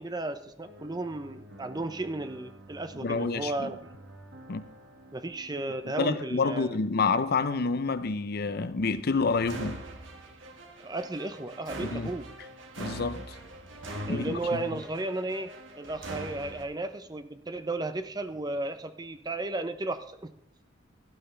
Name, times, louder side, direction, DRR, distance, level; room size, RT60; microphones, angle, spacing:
voice 1, 0.0-3.8 5.1-6.8 10.8-12.3 14.1-15.5 15.8-20.3, right 2 dB, 20° right, 0.7 m, -34 dB
sound 1, 0.6-16.6, right 1 dB, 65° right, 1.7 m, -45 dB
voice 2, 3.0-3.7 4.5-4.6 6.0-9.8 11.8-12.1 12.8-13.3 14.1-14.6, left 4 dB, 50° left, 0.6 m, -28 dB
16.5 x 11.5 x 3.3 m
head